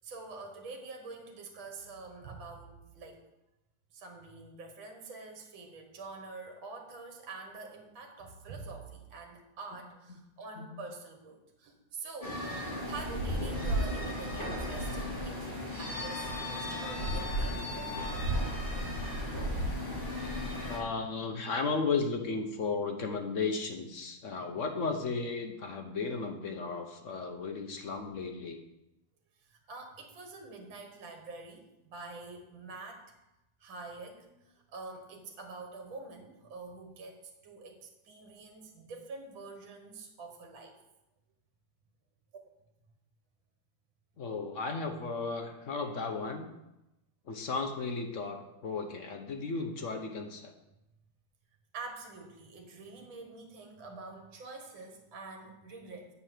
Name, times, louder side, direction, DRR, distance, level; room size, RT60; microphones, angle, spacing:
voice 1, 0.0-3.2 3.9-12.4 12.9-18.2 29.5-33.1 33.6-40.8 51.7-56.1, right 3 dB, 75° right, 3 dB, 2.1 m, -46 dB
sound 1, 12.2-20.8, equal, 25° left, 2.6 m, -34 dB
voice 2, 19.8-28.6 44.2-46.5 47.3-50.5, left 4 dB, 55° left, 4 dB, 0.8 m, -35 dB
8.3 x 4.8 x 7.4 m, 0.92 s
omnidirectional pair, 2.2 m